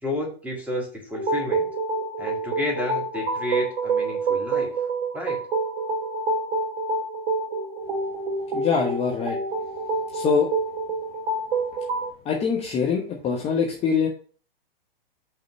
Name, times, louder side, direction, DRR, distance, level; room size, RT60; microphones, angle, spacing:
voice 1, 0.0-1.7 2.2-4.7 5.1-5.4, left 1 dB, 5° right, -1 dB, 1.8 m, -31 dB
sound 1, 1.1-12.1, right 3 dB, 45° right, 2.8 m, -27 dB
voice 2, 8.5-9.4 10.1-10.5 12.2-14.1, left 6 dB, 20° left, -1 dB, 1.0 m, -23 dB
5.5 x 3.7 x 5.5 m, 0.41 s
hypercardioid pair, 125°, 30 cm